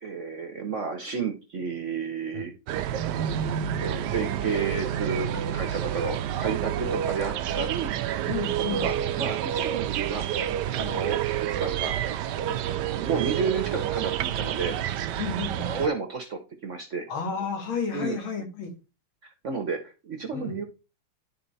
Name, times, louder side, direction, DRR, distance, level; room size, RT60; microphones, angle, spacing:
voice 1, 0.0-2.5 3.8-7.9 8.7-10.3 10.8-11.9 12.6-14.8 15.6-17.1 17.9-18.2 19.4-20.6, right 5 dB, 50° right, 5 dB, 1.0 m, -31 dB
sound 1, 2.7-15.9, right 10 dB, 70° right, 1.1 m, -29 dB
voice 2, 8.3-8.8 10.8-10.9 12.5-12.6 15.2-15.7 17.1-18.7 20.3-20.6, left 5 dB, 75° left, 4 dB, 2.6 m, -32 dB
10.5 x 3.9 x 4.1 m, 0.30 s
omnidirectional pair, 2.2 m